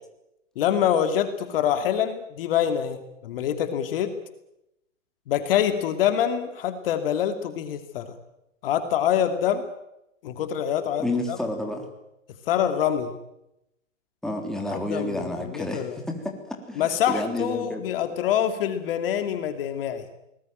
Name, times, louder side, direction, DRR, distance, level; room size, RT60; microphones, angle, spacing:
voice 1, 0.6-4.1 5.3-8.1 8.6-9.6 10.2-11.4 12.5-13.1 14.7-16.0 16.8-20.0, left 9 dB, 45° left, 8 dB, 2.6 m, -25 dB
voice 2, 11.0-11.9 14.2-17.8, left 1 dB, ahead, 2 dB, 3.5 m, -30 dB
24.5 x 20.0 x 9.2 m, 0.85 s
hypercardioid pair, 135°, 39 cm